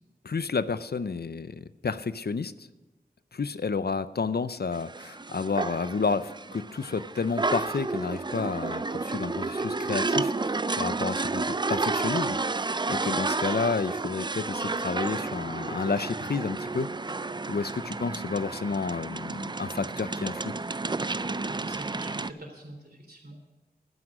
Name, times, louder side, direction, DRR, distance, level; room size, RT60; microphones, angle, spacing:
voice 1, 0.2-2.7 3.3-17.1 17.5-20.5, left 4 dB, 75° left, 14 dB, 0.5 m, -31 dB
sound 1, 4.7-22.3, right 3 dB, 25° right, 0.4 m, -31 dB
voice 2, 21.5-23.4, right 1 dB, 70° right, 1 dB, 3.4 m, -45 dB
12.0 x 9.8 x 6.3 m, 1.1 s
wide cardioid pair, 50°, 17 cm